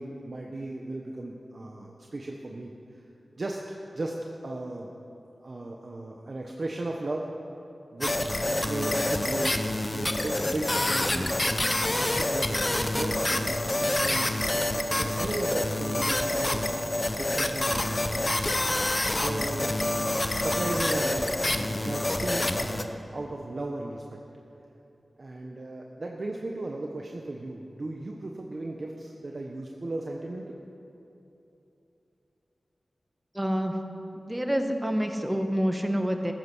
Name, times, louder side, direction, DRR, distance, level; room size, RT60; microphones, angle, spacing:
voice 1, 0.0-3.0 3.4-3.6 3.9-4.9 5.4-7.3 7.9-8.2 8.6-9.6 9.9-13.6 14.0-16.8 17.2-18.5 19.2-19.8 20.1-24.2 25.2-30.5, right 2 dB, 50° right, 0 dB, 1.2 m, -36 dB
sound 1, 8.0-22.8, left 1 dB, 25° left, 0.9 m, -27 dB
voice 2, 33.3-33.7 34.1-36.3, equal, 10° right, 5 dB, 1.4 m, -27 dB
15.5 x 14.5 x 6.3 m, 2.9 s
wide cardioid pair, 95°, 0 cm